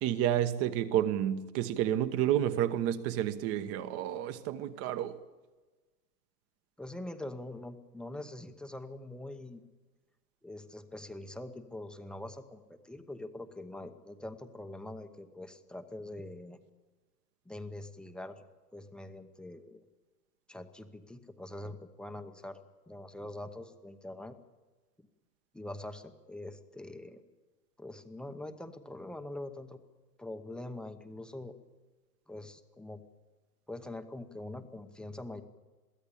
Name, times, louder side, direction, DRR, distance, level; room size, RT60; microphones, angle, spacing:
voice 1, 0.0-5.2, right 11 dB, 30° right, 1.2 m, -30 dB
voice 2, 6.8-9.6 10.4-16.6 17.4-18.4 18.7-19.8 20.5-24.3 25.5-27.2 27.8-29.8 30.2-31.5 32.3-33.0 33.7-35.4, left 1 dB, ahead, 0.9 m, -44 dB
23.0 x 15.5 x 8.6 m
hypercardioid pair, 135°, 48 cm